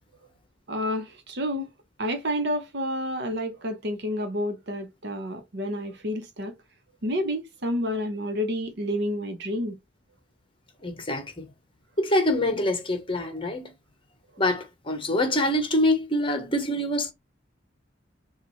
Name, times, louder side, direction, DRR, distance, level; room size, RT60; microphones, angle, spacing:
voice 1, 0.7-1.7 2.0-6.5 7.0-9.8, equal, 60° right, 0.9 m, -29 dB
voice 2, 10.8-11.5 12.0-13.7 14.4-17.1, left 1 dB, 30° left, 0.9 m, -25 dB
5.7 x 2.4 x 3.1 m
head